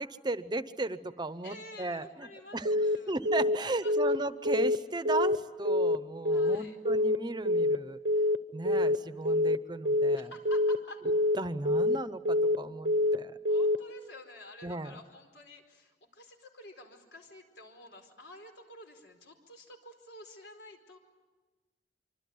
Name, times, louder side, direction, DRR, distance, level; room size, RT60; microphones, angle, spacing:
voice 1, 0.0-2.8 3.1-8.0 8.5-10.3 11.4-13.4 14.6-15.0, right 2 dB, 25° right, 13 dB, 0.8 m, -36 dB
voice 2, 1.4-3.2 3.8-4.1 6.3-6.8 10.1-11.0 13.1-21.0, left 1 dB, 85° left, 5 dB, 4.5 m, -50 dB
Telephone, 2.7-3.0 3.3-3.6 3.9-4.2 4.5-4.8 5.1-5.4 5.7-6.0 6.3-6.6 6.9-7.2 7.5-7.8 8.1-8.4 8.7-9.0 9.3-9.6 9.9-10.2 10.5-10.8 11.1-11.4 11.7-12.0 12.3-12.6 12.9-13.2 13.5-13.8, left 1 dB, 80° right, 1.0 m, -26 dB
25.5 x 25.0 x 9.3 m, 1.3 s
head